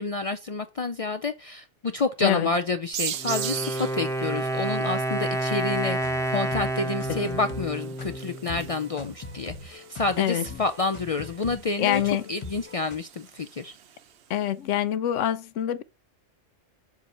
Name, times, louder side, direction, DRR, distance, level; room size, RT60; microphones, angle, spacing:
voice 1, 0.0-6.0 6.3-12.0 12.3-13.7, left 3 dB, 65° left, 0.3 m, -29 dB
voice 2, 2.2-2.5 7.1-7.2 10.2-10.5 11.8-12.2 14.3-15.8, left 11 dB, 85° left, 1.0 m, -25 dB
sound 1, 2.9-14.3, right 9 dB, 65° right, 0.9 m, -41 dB
Wind instrument woodwind instrument, 3.1-8.9, right 1 dB, 5° left, 0.5 m, -29 dB
sound 2, 5.7-13.0, left 4 dB, 30° left, 0.8 m, -42 dB
7.3 x 2.9 x 5.3 m
omnidirectional pair, 1.2 m